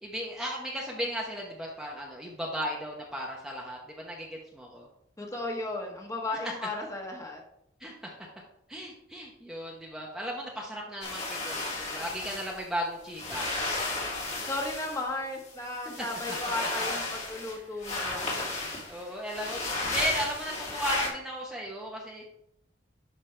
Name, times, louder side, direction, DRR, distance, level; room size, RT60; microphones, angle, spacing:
voice 1, 0.0-4.9 7.8-8.1 8.7-13.5 18.0-18.3 18.9-22.3, equal, 5° right, -3 dB, 1.0 m, -35 dB
voice 2, 5.2-7.4 14.5-18.5, left 2 dB, 20° left, 0 dB, 1.4 m, -35 dB
sound 1, 11.0-12.6 13.1-15.0 15.4-17.6 17.8-21.1, left 2 dB, 40° left, 2.4 m, -34 dB
11.0 x 5.3 x 3.3 m, 0.77 s
head